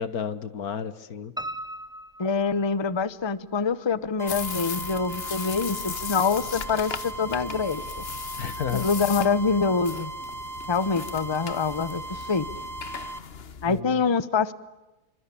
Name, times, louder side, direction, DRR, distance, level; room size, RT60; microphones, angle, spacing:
voice 1, 0.0-1.3 8.4-8.9 13.7-14.0, left 8 dB, 80° left, 14 dB, 1.9 m, -32 dB
Piano, 1.4-3.3 3.7-4.6 4.9-5.0 5.5-5.6 5.8-5.9, right 1 dB, 5° right, 0.5 m, -38 dB
voice 2, 2.2-7.8 8.7-10.1 10.7-12.5 13.6-14.5, left 5 dB, 20° left, 17 dB, 0.8 m, -25 dB
sound 1, 4.2-13.2, right 2 dB, 25° right, 1.8 m, -38 dB
sound 2, 4.3-13.8, left 6 dB, 45° left, 1.2 m, -38 dB
27.5 x 24.5 x 8.6 m, 1.0 s
omnidirectional pair, 1.5 m